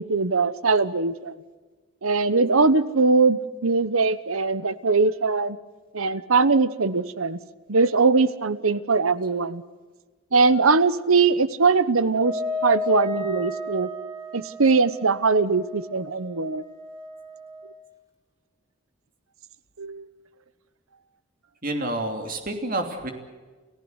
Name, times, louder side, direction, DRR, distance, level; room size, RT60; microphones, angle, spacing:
voice 1, 0.0-1.4 2.0-5.6 5.9-7.4 7.7-9.6 10.3-12.3 12.6-13.9 14.3-16.6 19.8-20.1, right 4 dB, 85° right, 15 dB, 1.0 m, -21 dB
Wind instrument woodwind instrument, 12.1-17.8, left 2 dB, 15° right, 2.9 m, -34 dB
voice 2, 21.6-23.1, right 1 dB, 40° right, 5 dB, 3.0 m, -28 dB
29.5 x 15.0 x 8.1 m, 1.4 s
head